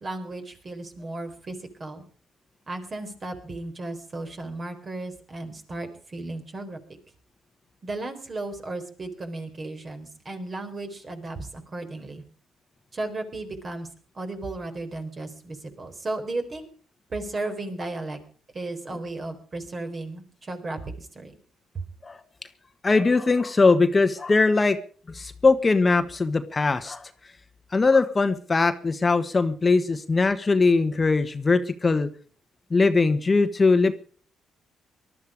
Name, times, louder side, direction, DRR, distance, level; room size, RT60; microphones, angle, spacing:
voice 1, 0.0-2.0 2.7-6.8 7.8-12.2 12.9-13.9 14.2-16.7 17.1-18.2 18.5-21.3, right 2 dB, 35° right, 6 dB, 4.1 m, -35 dB
voice 2, 22.8-24.8 25.1-27.1 27.7-32.1 32.7-33.9, left 3 dB, 25° left, 9 dB, 1.3 m, -21 dB
19.5 x 12.5 x 4.9 m, 0.43 s
cardioid pair, 90°, 0 cm